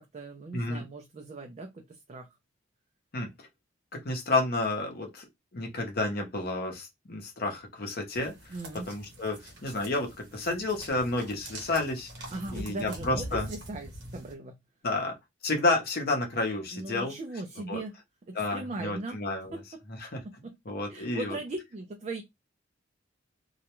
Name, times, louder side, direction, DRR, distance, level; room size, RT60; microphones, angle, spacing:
voice 1, 0.0-2.4 8.5-8.9 12.3-14.6 16.7-17.9 18.3-19.2 19.5-19.6 20.2-22.2, right 2 dB, 35° right, 0.4 m, -39 dB
voice 2, 3.1-3.5 3.9-5.2 5.5-8.5 8.9-13.5 14.8-15.2 15.4-17.1 17.7-17.8 18.4-19.6 20.0-20.2 20.7-21.4, left 2 dB, 55° left, 0.7 m, -31 dB
sound 1, 8.1-14.3, right 1 dB, 60° right, 0.9 m, -43 dB
2.3 x 2.1 x 2.9 m
head